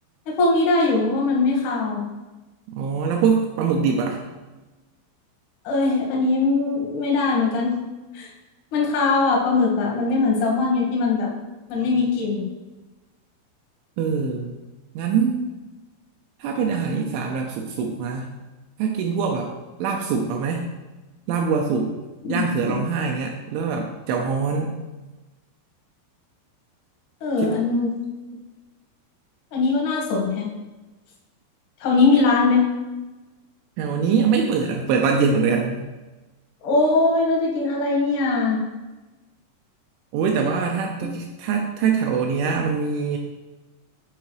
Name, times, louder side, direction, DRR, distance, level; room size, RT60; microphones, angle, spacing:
voice 1, 0.4-2.0 5.7-7.7 8.1-8.3 8.7-11.3 11.7-12.4 22.2-22.8 27.2-27.9 29.5-30.5 31.8-32.6 36.6-38.6 41.0-41.1, left 3 dB, 80° left, -2 dB, 1.7 m, -21 dB
voice 2, 2.7-4.2 14.0-14.6 15.0-15.5 16.4-18.3 18.8-19.5 19.8-20.6 21.3-22.0 22.3-24.7 27.4-27.6 33.8-35.8 40.1-43.2, right 5 dB, 85° right, 2 dB, 2.8 m, -23 dB
8.2 x 4.5 x 3.1 m, 1.2 s
omnidirectional pair, 5.7 m